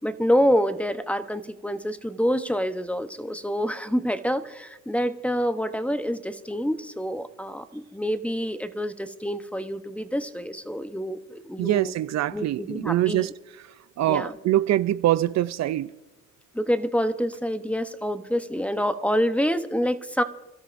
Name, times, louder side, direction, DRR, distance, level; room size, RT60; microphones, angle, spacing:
voice 1, 0.0-11.9 12.3-13.3 14.1-14.3 16.5-20.2, equal, 5° left, 0.8 m, -27 dB
voice 2, 11.6-15.9, right 14 dB, 60° right, 0.4 m, -24 dB
28.5 x 13.0 x 2.6 m
cardioid pair, 90°, 30 cm